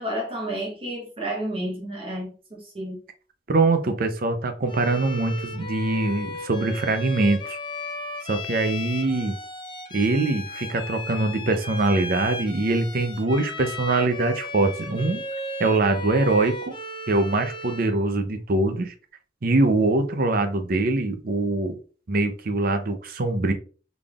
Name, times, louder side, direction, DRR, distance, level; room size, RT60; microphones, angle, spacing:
voice 1, 0.0-3.0, right 1 dB, 30° right, 1.1 m, -31 dB
voice 2, 3.5-7.6 8.3-9.4 9.9-15.2 15.6-16.7 17.1-18.9 19.4-21.8 22.1-23.5, right 2 dB, 55° right, 0.6 m, -23 dB
Bowed string instrument, 4.7-18.0, left 1 dB, 25° left, 0.6 m, -35 dB
3.9 x 3.4 x 2.4 m
head